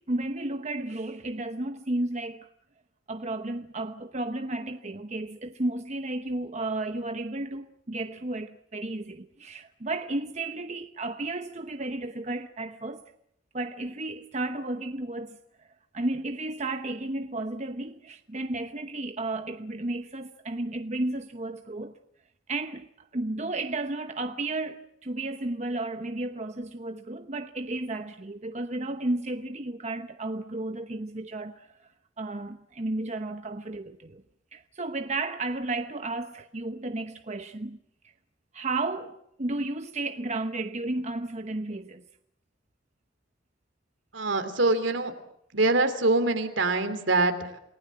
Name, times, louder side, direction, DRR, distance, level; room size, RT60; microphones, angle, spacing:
voice 1, 0.0-2.5 3.1-13.0 13.5-15.7 15.9-22.0 22.5-31.9 32.2-34.2 34.5-37.8 38.5-42.1, right 2 dB, 35° right, 1.0 m, -33 dB
voice 2, 44.1-45.1 45.5-47.6, right 2 dB, 75° right, 3.0 m, -24 dB
28.5 x 19.0 x 7.5 m
head